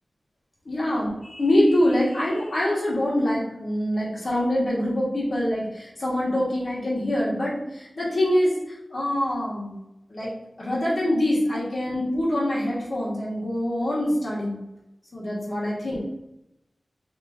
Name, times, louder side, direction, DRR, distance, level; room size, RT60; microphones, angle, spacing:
voice 1, 0.6-8.5 8.9-9.7 10.1-10.3 10.6-14.6 15.1-16.1, left 1 dB, 50° left, -6 dB, 1.2 m, -24 dB
2.9 x 2.3 x 3.6 m, 0.89 s
wide cardioid pair, 95°, 0 cm